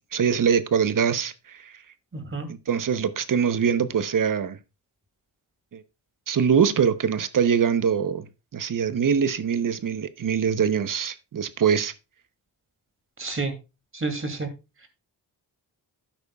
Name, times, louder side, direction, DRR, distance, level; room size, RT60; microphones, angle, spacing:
voice 1, 0.1-1.8 2.5-4.6 5.7-5.8 6.3-11.9, right 7 dB, 50° right, 0.9 m, -23 dB
voice 2, 2.1-2.5 13.2-13.5 13.9-14.5, right 3 dB, 30° right, 2.6 m, -29 dB
12.0 x 8.9 x 2.3 m
cardioid pair, 80°, 41 cm